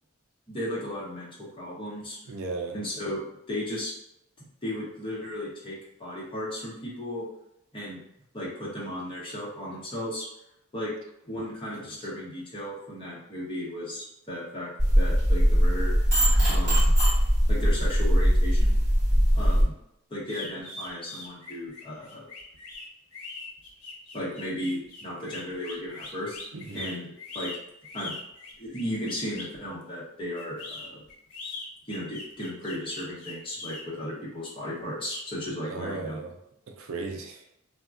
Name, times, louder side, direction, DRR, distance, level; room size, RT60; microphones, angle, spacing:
voice 1, 0.5-2.2 2.7-3.9 4.4-7.3 7.7-8.0 8.3-10.3 10.7-10.9 11.3-15.9 16.5-16.9 17.5-18.8 19.3-19.8 20.1-22.2 24.1-26.4 26.7-27.1 27.3-27.5 27.9-28.1 28.6-31.0 31.9-36.2, left 1 dB, 25° left, -7 dB, 0.9 m, -35 dB
voice 2, 2.3-2.8 11.8-11.9 26.5-26.9 35.6-36.3 36.7-37.4, right 3 dB, 60° right, 2 dB, 0.4 m, -36 dB
sound 1, 14.8-19.6, equal, 35° right, 1.5 m, -21 dB
sound 2, 20.3-29.6 30.4-33.8, left 3 dB, 80° left, 0.8 m, -41 dB
3.5 x 2.2 x 2.4 m, 0.81 s
head